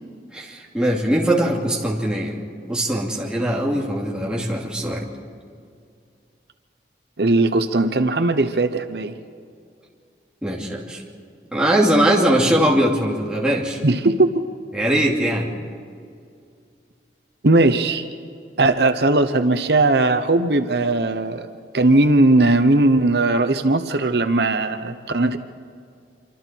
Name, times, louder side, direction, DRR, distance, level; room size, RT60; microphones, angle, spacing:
voice 1, 0.3-5.1 10.4-11.0 11.5-13.8 14.7-15.5, right 1 dB, 5° right, -3 dB, 2.7 m, -21 dB
voice 2, 7.2-9.1 13.8-14.4 17.4-18.0 18.6-21.5 21.7-25.4, right 2 dB, 70° right, 9 dB, 0.9 m, -18 dB
27.0 x 25.0 x 4.6 m, 2.3 s
head